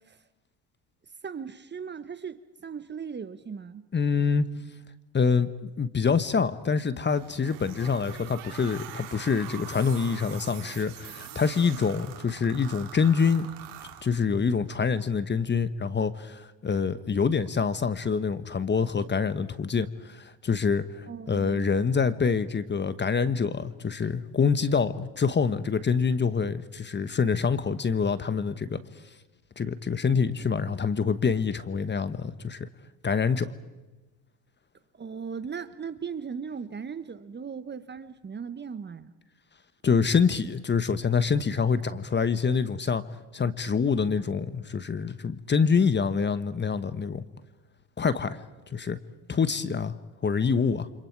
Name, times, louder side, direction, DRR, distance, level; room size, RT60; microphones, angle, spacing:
voice 1, 1.2-3.8 21.1-21.7 34.9-39.1, right 6 dB, 25° right, 1.2 m, -38 dB
voice 2, 3.9-4.4 5.1-13.5 14.0-28.8 29.6-32.7 33.0-33.5 39.8-43.0 43.3-47.2 48.0-48.4 48.7-49.0 49.3-49.9 50.2-50.9, left 5 dB, 25° left, 1.3 m, -26 dB
sound 1, 7.0-14.5, right 10 dB, 60° right, 3.8 m, -44 dB
29.5 x 26.0 x 4.8 m
hypercardioid pair, 80°, 45 cm